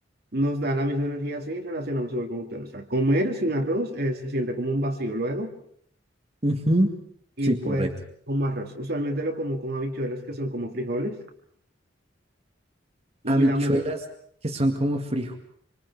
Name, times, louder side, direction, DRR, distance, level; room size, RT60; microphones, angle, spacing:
voice 1, 0.3-5.5 7.4-7.9 8.3-11.2 13.2-13.8, equal, 60° right, 4 dB, 2.5 m, -27 dB
voice 2, 6.4-6.9 7.4-7.9 13.3-14.0 14.4-15.4, right 1 dB, 35° right, 3 dB, 2.2 m, -23 dB
26.5 x 26.0 x 4.9 m, 0.64 s
head